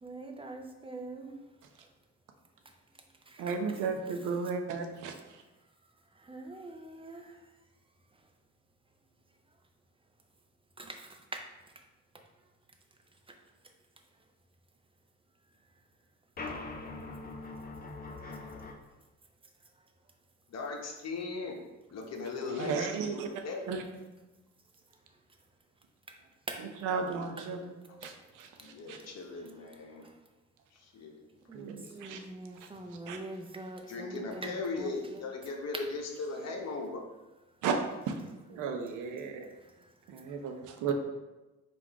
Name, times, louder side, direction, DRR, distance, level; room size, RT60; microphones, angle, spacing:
voice 1, 0.0-1.4 1.8-1.9 3.3-3.8 4.1-4.2 6.1-7.5 8.1-8.3 10.8-11.9 12.1-12.2 13.3-13.4 19.6-19.9 24.9-25.0 26.1-26.2 26.5-26.7 27.4-27.5 27.9-30.2 31.5-35.2 35.7-35.8 38.2-38.7 39.1-40.5, right 2 dB, 20° right, 3 dB, 0.6 m, -46 dB
voice 2, 3.4-5.4 22.6-23.3 23.7-23.8 26.8-27.7 28.0-28.1 28.4-29.0 31.5-32.2 32.6-32.7 33.1-33.2 37.6-37.8 38.1-38.2 38.5-39.5 40.1-40.9, right 5 dB, 85° right, 4 dB, 0.6 m, -34 dB
sound 1, 16.4-18.7, left 3 dB, 30° left, 0.6 m, -42 dB
voice 3, 20.5-21.6 21.9-23.7 28.6-30.0 30.7-31.2 33.9-37.0, left 3 dB, 60° left, 1 dB, 0.9 m, -38 dB
3.7 x 2.5 x 4.5 m, 1.1 s
cardioid pair, 90°, 30 cm